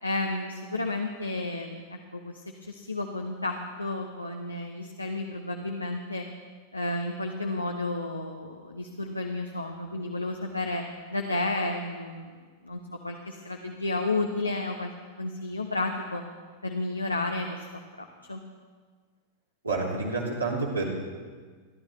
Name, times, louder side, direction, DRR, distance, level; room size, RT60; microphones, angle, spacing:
voice 1, 0.0-6.3 6.7-10.8 11.1-12.4 12.6-16.2 16.6-17.7 18.0-18.4, left 2 dB, 85° left, 2 dB, 1.0 m, -32 dB
voice 2, 19.6-20.9, right 3 dB, 80° right, -4 dB, 3.1 m, -28 dB
30.0 x 11.5 x 3.1 m, 1.5 s
figure-of-eight pair, 90°, 0 cm